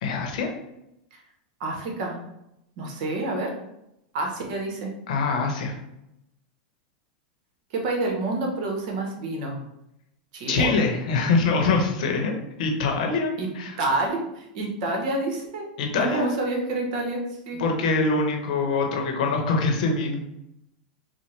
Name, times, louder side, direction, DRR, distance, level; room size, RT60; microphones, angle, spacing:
voice 1, 0.0-0.5 5.1-5.7 10.5-13.8 15.8-16.3 17.6-20.2, left 3 dB, 70° left, 2 dB, 0.9 m, -24 dB
voice 2, 1.6-2.2 2.8-3.5 4.1-4.9 7.7-9.6 10.3-10.7 13.4-13.5 13.8-15.6 15.9-17.2 17.5-17.6, right 2 dB, 60° right, 1 dB, 1.0 m, -28 dB
4.3 x 2.2 x 3.2 m, 0.84 s
hypercardioid pair, 120°, 4 cm